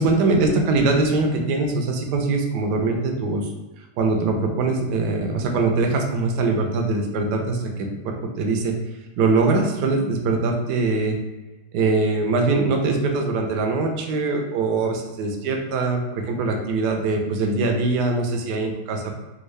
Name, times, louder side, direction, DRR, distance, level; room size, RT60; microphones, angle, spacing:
voice 1, 0.0-3.5 4.0-8.8 9.2-11.2 11.7-19.1, right 3 dB, 80° right, 3 dB, 1.2 m, -22 dB
3.6 x 2.3 x 3.1 m, 1.1 s
omnidirectional pair, 1.8 m